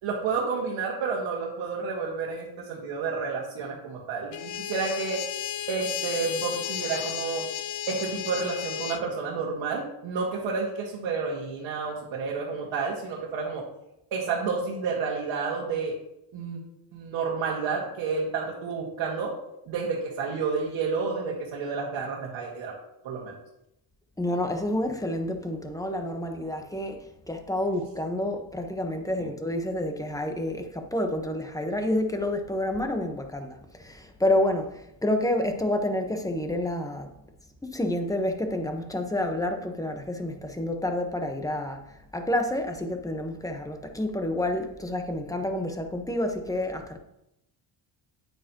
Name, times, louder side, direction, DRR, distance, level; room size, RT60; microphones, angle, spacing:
voice 1, 0.0-5.2 5.7-7.5 7.9-13.6 14.1-16.0 16.3-16.6 16.9-19.3 19.7-22.7 23.0-23.3 29.2-29.3, right 5 dB, 80° right, -5 dB, 2.0 m, -30 dB
sound 1, 4.3-9.0, left 11 dB, 75° left, 0.8 m, -33 dB
voice 2, 24.2-37.1 37.6-47.0, left 1 dB, 5° left, 5 dB, 1.2 m, -29 dB
9.3 x 9.2 x 3.0 m, 0.83 s
cardioid pair, 90°, 46 cm